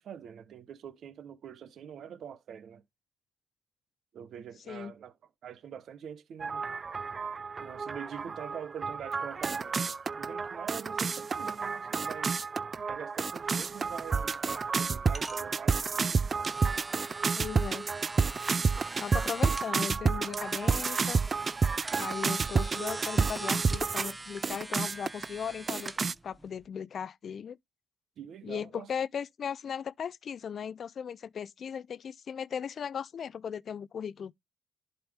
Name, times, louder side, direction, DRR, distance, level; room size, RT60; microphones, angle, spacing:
voice 1, 0.0-2.8 4.1-5.1 5.4-6.6 7.6-12.4 12.8-16.2 28.2-28.9, right 8 dB, 65° right, 1.1 m, -45 dB
sound 1, 6.4-24.1 24.4-25.2 25.7-26.1, right 5 dB, 35° right, 0.3 m, -30 dB
sound 2, 13.4-26.7, right 2 dB, 15° right, 0.8 m, -44 dB
voice 2, 17.4-17.9 19.0-21.2 22.0-27.6 28.4-34.3, left 7 dB, 55° left, 0.4 m, -37 dB
11.0 x 4.3 x 3.4 m
cardioid pair, 90°, 0 cm